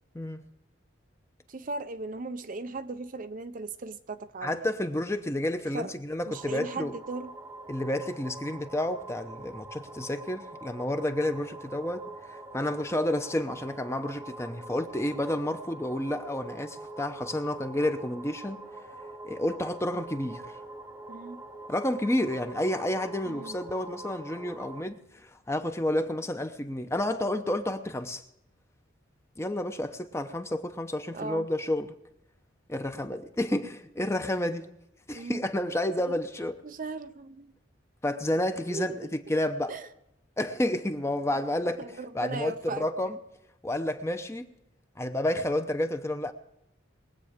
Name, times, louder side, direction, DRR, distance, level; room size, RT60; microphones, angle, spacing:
voice 1, 1.5-4.7 5.7-5.9 6.3-7.3 21.1-21.5 23.3-23.6 31.1-31.5 35.1-35.4 36.0-36.1 36.6-37.5 38.7-39.1 39.7-39.9 41.8-42.9, right 3 dB, 45° right, 0.6 m, -37 dB
voice 2, 4.4-6.9 7.7-18.6 19.2-20.6 21.7-28.2 29.4-31.9 32.7-34.7 35.1-36.6 38.0-39.8 40.4-41.9 42.1-43.2 43.6-44.5 45.0-46.3, left 1 dB, 15° left, 0.8 m, -30 dB
sound 1, 6.3-24.8, right 2 dB, 15° right, 0.9 m, -44 dB
21.5 x 8.4 x 5.0 m
head